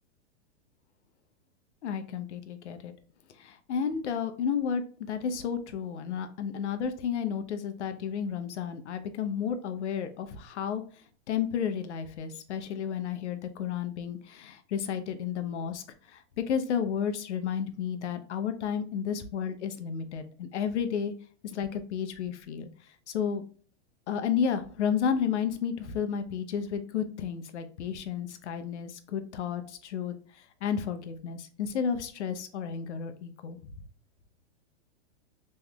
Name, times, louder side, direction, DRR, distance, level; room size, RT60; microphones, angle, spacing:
voice 1, 1.8-2.9 3.4-10.8 11.3-21.1 21.4-22.7 23.1-23.4 24.1-33.7, left 7 dB, 80° left, 9 dB, 0.7 m, -32 dB
3.5 x 3.1 x 2.3 m, 0.42 s
supercardioid pair, 165°, 34 cm